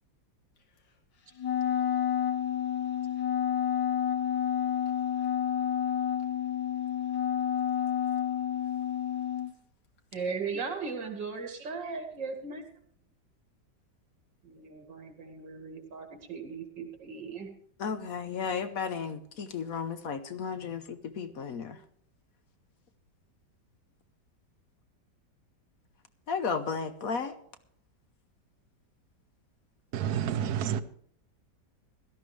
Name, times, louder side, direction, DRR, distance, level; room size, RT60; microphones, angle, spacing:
Wind instrument woodwind instrument, 1.4-9.5, left 9 dB, 85° left, 2.3 m, -29 dB
voice 1, 10.1-12.6 14.4-17.5, right 5 dB, 85° right, 2.9 m, -37 dB
voice 2, 17.8-21.8 26.3-27.3, left 6 dB, 60° left, 1.1 m, -34 dB
voice 3, 29.9-30.8, right 9 dB, 65° right, 1.2 m, -29 dB
17.0 x 12.5 x 3.3 m
omnidirectional pair, 1.9 m